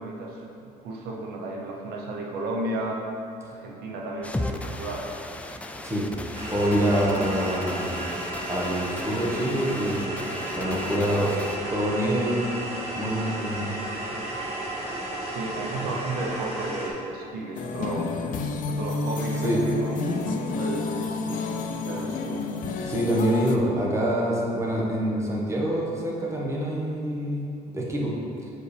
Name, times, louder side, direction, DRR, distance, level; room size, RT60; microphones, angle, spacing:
voice 1, 0.0-3.0 3.5-5.1 6.9-7.5 14.1-14.3 15.3-18.1 18.7-22.4, right 2 dB, 90° right, 0 dB, 0.8 m, -34 dB
sound 1, 4.2-11.6, left 1 dB, 10° left, 0.3 m, -37 dB
sound 2, 6.3-16.9, right 1 dB, 40° right, 1.4 m, -33 dB
voice 2, 6.5-7.9 8.5-10.2 10.5-11.4 11.7-12.5 13.0-13.7 19.4-19.6 22.8-27.5 27.7-28.1, equal, 20° right, -4 dB, 1.3 m, -25 dB
sound 3, 17.5-23.6, left 3 dB, 55° left, 0.5 m, -30 dB
7.7 x 5.1 x 3.4 m, 2.6 s
cardioid pair, 120°, 16 cm